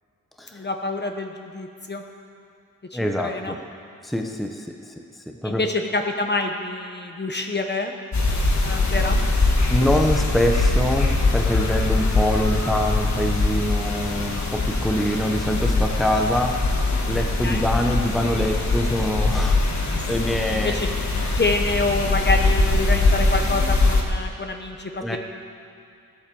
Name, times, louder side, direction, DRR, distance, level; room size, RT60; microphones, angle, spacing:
voice 1, 0.5-2.0 2.9-3.5 5.4-7.9 8.6-9.2 17.4-17.7 20.5-20.9 21.3-25.2, left 3 dB, 30° left, 4 dB, 1.0 m, -26 dB
voice 2, 2.9-3.6 4.0-4.9 5.3-5.6 9.7-16.6 17.1-20.8 25.0-25.2, equal, ahead, 2 dB, 0.9 m, -24 dB
sound 1, 8.1-24.0, left 2 dB, 50° left, 1.7 m, -22 dB
15.0 x 8.5 x 7.0 m, 2.6 s
wide cardioid pair, 95°, 35 cm